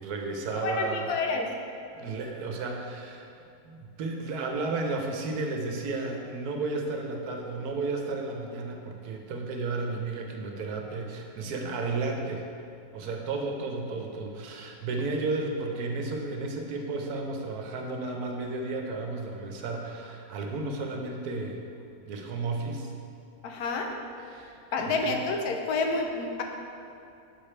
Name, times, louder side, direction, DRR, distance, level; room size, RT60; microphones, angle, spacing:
voice 1, 0.0-1.1 1.9-3.3 3.6-12.5 12.9-21.6 22.0-22.9 24.2-24.6 25.0-25.1, right 3 dB, 80° right, 2 dB, 1.2 m, -33 dB
voice 2, 0.6-1.5 23.4-23.9 24.7-26.4, left 3 dB, 80° left, 2 dB, 1.2 m, -29 dB
6.0 x 5.0 x 4.3 m, 2.7 s
omnidirectional pair, 1.6 m